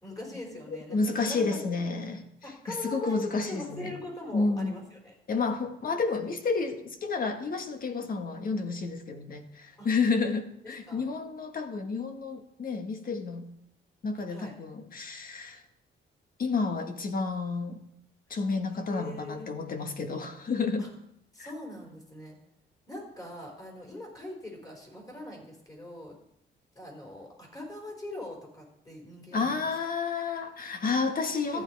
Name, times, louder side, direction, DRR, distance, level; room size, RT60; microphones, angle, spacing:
voice 1, 0.0-1.6 2.4-3.2 3.5-5.1 9.8-9.9 10.9-11.0 14.3-14.5 18.9-19.5 20.8-20.9 21.3-22.4 22.9-26.2 26.7-29.5 31.5-31.6, left 1 dB, 20° left, 4.9 m, -42 dB
voice 2, 0.7-2.3 2.7-3.9 4.3-4.8 5.3-13.5 14.0-15.6 16.4-17.8 18.3-20.9 29.3-31.6, left 4 dB, 45° left, 1.6 m, -30 dB
14.0 x 9.9 x 4.7 m
cardioid pair, 115°, 20 cm